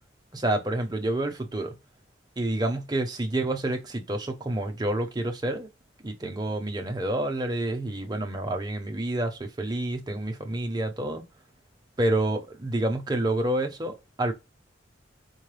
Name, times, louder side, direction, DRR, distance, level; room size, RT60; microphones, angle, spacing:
voice 1, 0.3-1.8 2.4-5.7 6.0-11.2 12.0-14.3, right 1 dB, 20° right, 0.7 m, -28 dB
4.7 x 2.2 x 3.3 m
head